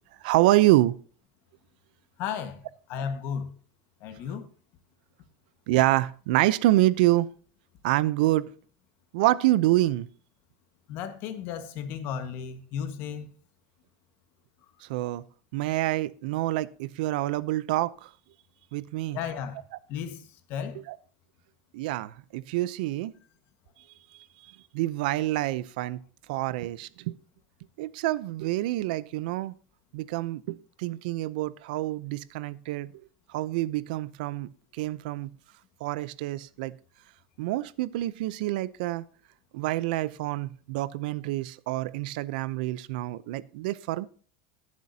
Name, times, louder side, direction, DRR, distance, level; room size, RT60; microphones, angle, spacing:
voice 1, 0.2-1.0 5.7-7.3 7.8-8.5 9.1-10.1 14.9-15.2 15.5-18.1 18.7-19.2 21.7-23.1 24.7-26.0 26.3-27.2 27.8-29.5 29.9-32.9 33.3-35.4 35.8-36.8 37.4-39.0 39.5-44.1, right 16 dB, 70° right, 0.6 m, -27 dB
voice 2, 2.2-2.6 2.9-3.6 4.0-4.5 10.9-13.3 19.1-19.6 19.9-20.8, left 7 dB, 45° left, 1.5 m, -34 dB
21.0 x 7.5 x 2.8 m
supercardioid pair, 150°, 5 cm